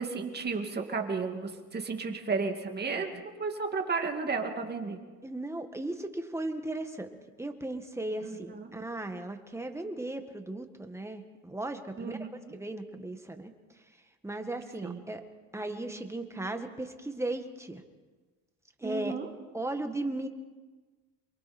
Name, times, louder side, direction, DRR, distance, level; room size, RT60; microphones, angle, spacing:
voice 1, 0.0-5.0 8.2-8.8 12.0-12.6 14.8-15.0 18.8-19.3, right 4 dB, 25° right, 4 dB, 2.4 m, -33 dB
voice 2, 5.2-7.1 7.4-12.2 12.5-13.5 14.2-15.2 15.5-17.8 18.8-19.1 19.5-20.3, right 2 dB, 5° right, 6 dB, 1.7 m, -36 dB
28.5 x 22.5 x 4.4 m, 1.3 s
cardioid pair, 125°, 36 cm